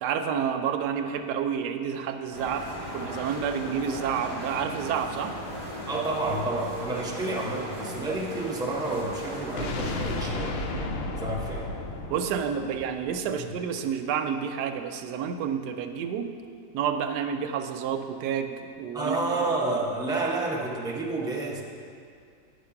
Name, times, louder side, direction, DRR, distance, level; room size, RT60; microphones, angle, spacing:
voice 1, 0.0-5.4 10.6-10.9 12.1-16.3 16.7-19.6 20.1-20.2, right 7 dB, 80° right, 6 dB, 1.2 m, -30 dB
sound 1, 2.3-10.7, equal, 55° left, 2.9 m, -37 dB
voice 2, 5.9-10.6 11.2-11.7 13.4-13.5 18.9-21.6, right 2 dB, 5° right, -2 dB, 0.4 m, -30 dB
sound 2, 9.6-13.5, left 2 dB, 80° left, 0.5 m, -33 dB
9.8 x 5.1 x 5.8 m, 2.3 s
omnidirectional pair, 1.8 m